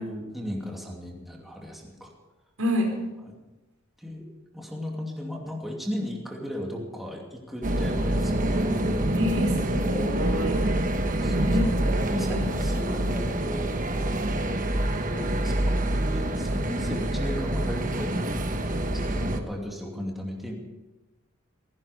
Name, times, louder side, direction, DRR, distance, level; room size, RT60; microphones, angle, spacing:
voice 1, 0.0-2.1 3.2-3.3 4.0-4.2 4.5-9.0 11.2-11.8 12.1-13.7 15.0-15.8 16.1-20.5, equal, ahead, -1 dB, 2.5 m, -36 dB
sound 1, 7.6-19.4, right 1 dB, 40° right, 1.2 m, -26 dB
voice 2, 9.1-10.6 11.5-11.7 12.3-12.4, left 1 dB, 85° right, 1 dB, 4.8 m, -28 dB
16.0 x 16.0 x 5.0 m, 1.1 s
head